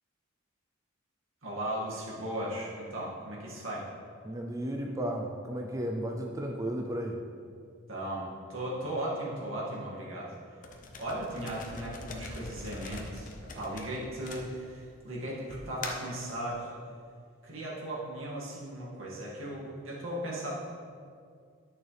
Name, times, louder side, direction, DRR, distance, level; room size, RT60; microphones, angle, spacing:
voice 1, 1.4-3.9 7.9-10.3 11.0-16.7 17.4-20.5, right 1 dB, 80° right, -5 dB, 2.3 m, -37 dB
voice 2, 4.2-7.2, right 1 dB, 15° right, 1 dB, 0.5 m, -34 dB
sound 1, 10.6-14.9 15.5-16.2, left 3 dB, 40° left, 0.8 m, -42 dB
11.0 x 6.5 x 3.5 m, 2.2 s
head